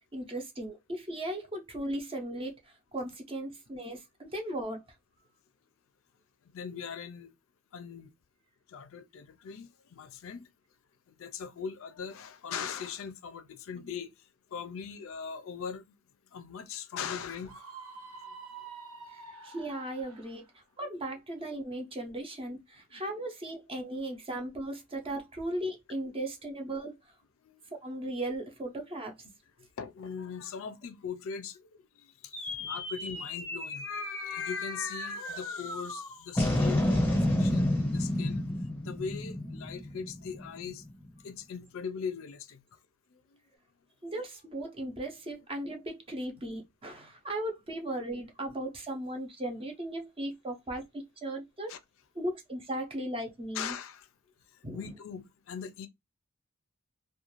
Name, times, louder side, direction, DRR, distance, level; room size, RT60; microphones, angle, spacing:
voice 1, 0.1-4.9 19.1-27.0 27.8-29.3 32.6-32.7 44.0-51.7 52.1-53.8 54.6-54.8, right 1 dB, 25° right, 0.6 m, -37 dB
voice 2, 6.5-7.3 7.7-8.1 8.7-10.5 11.2-14.1 14.5-15.9 16.3-17.6 20.8-20.9 26.0-26.1 27.4-27.6 29.8-31.7 31.9-32.3 32.7-38.5 38.8-40.8 41.2-42.6 43.3-43.4 51.7-51.8 53.5-54.1 54.7-55.9, left 6 dB, 65° left, 0.4 m, -40 dB
Screaming, 17.5-20.4, right 4 dB, 80° right, 0.6 m, -47 dB
sound 1, 32.3-40.9, left 1 dB, 10° left, 0.8 m, -31 dB
2.4 x 2.2 x 3.0 m
head